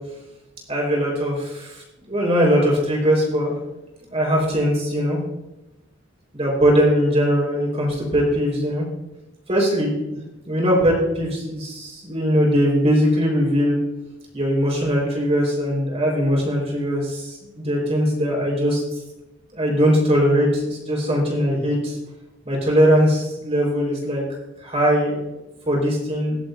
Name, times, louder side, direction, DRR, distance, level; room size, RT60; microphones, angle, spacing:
voice 1, 0.7-3.6 4.1-5.2 6.3-8.8 9.5-10.2 10.5-13.8 14.3-18.8 19.5-22.0 22.5-24.2 24.6-25.2 25.7-26.4, equal, 30° right, -1 dB, 4.3 m, -20 dB
21.0 x 7.9 x 2.6 m, 0.96 s
head